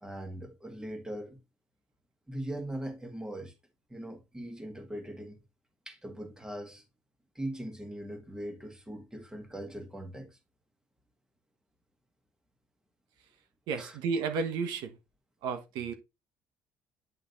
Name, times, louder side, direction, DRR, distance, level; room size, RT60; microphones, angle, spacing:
voice 1, 0.0-1.4 2.3-3.5 3.9-5.4 5.9-6.8 7.4-10.4 13.8-14.0, right 1 dB, 10° right, 1.8 m, -40 dB
voice 2, 13.7-15.0 15.4-15.9, right 5 dB, 75° right, 1.2 m, -32 dB
9.6 x 3.7 x 3.9 m
cardioid pair, 125°, 7 cm